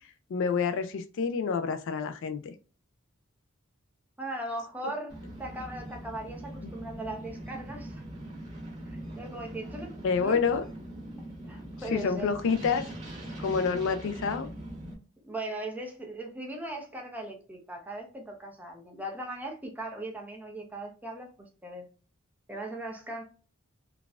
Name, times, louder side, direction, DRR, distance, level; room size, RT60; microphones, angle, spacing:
voice 1, 0.3-2.5 6.6-6.7 10.0-10.7 11.9-12.9 13.4-14.5, left 5 dB, 60° left, 10 dB, 0.3 m, -28 dB
voice 2, 4.2-8.0 8.8-9.9 10.2-10.4 11.5-12.3 15.2-21.9 22.5-23.2, right 1 dB, 10° right, 1 dB, 0.7 m, -39 dB
sound 1, 5.1-14.9, right 1 dB, 35° right, 1.3 m, -42 dB
3.9 x 2.3 x 2.3 m, 0.37 s
head